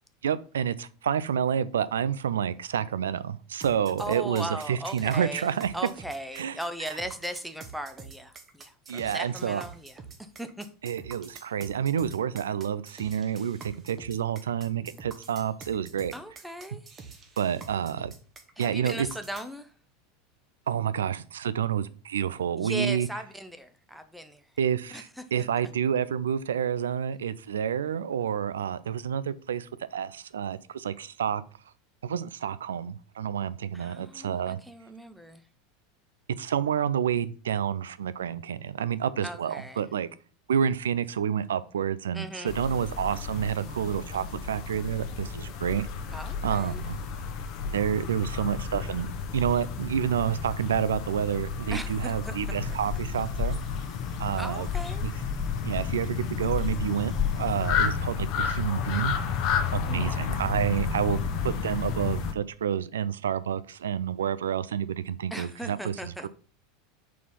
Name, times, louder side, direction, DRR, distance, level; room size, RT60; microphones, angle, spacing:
voice 1, 0.2-5.7 6.4-6.5 8.9-9.6 10.8-16.1 17.4-18.1 18.6-19.1 20.7-23.1 24.6-31.4 32.0-34.6 36.4-40.1 40.5-45.9 46.4-47.0 47.7-53.6 54.2-54.7 55.0-55.1 55.6-59.1 59.7-66.3, right 8 dB, 70° right, 0.3 m, -29 dB
sound 1, 3.6-19.5, right 5 dB, 30° right, 1.0 m, -47 dB
voice 2, 4.0-10.7 16.1-16.9 18.6-19.7 22.6-24.5 24.9-25.4 33.7-35.4 39.2-39.9 42.1-42.6 46.1-46.8 51.7-52.4 52.7-52.8 54.4-55.0 59.9-60.4 65.3-66.3, right 1 dB, ahead, 0.6 m, -38 dB
sound 2, 42.5-62.3, left 6 dB, 45° left, 0.8 m, -32 dB
sound 3, 52.6-57.9, left 8 dB, 15° left, 1.5 m, -33 dB
4.6 x 4.1 x 5.3 m
figure-of-eight pair, 80°, 0 cm